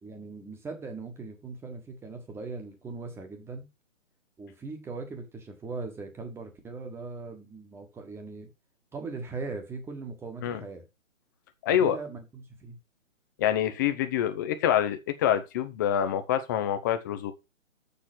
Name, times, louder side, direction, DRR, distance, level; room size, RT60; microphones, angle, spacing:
voice 1, 0.0-3.7 4.4-8.5 8.9-10.9 11.7-12.8, right 4 dB, 5° right, 1.4 m, -39 dB
voice 2, 11.6-12.0 13.4-17.3, left 10 dB, 15° left, 0.6 m, -26 dB
7.1 x 6.9 x 6.1 m
hypercardioid pair, 145°, 39 cm